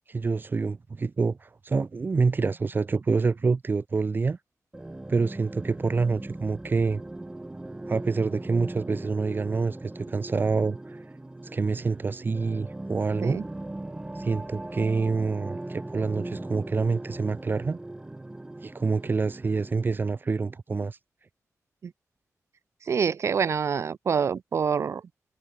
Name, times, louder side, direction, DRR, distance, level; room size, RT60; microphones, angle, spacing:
voice 1, 0.1-4.4 5.1-7.0 7.9-11.0 11.5-13.4 14.1-17.8 18.6-21.0, right 4 dB, 35° right, 1.3 m, -27 dB
sound 1, 4.7-20.0, right 2 dB, 15° right, 1.6 m, -39 dB
voice 2, 22.9-25.0, right 6 dB, 60° right, 0.5 m, -26 dB
wide cardioid pair, 170°, 6 cm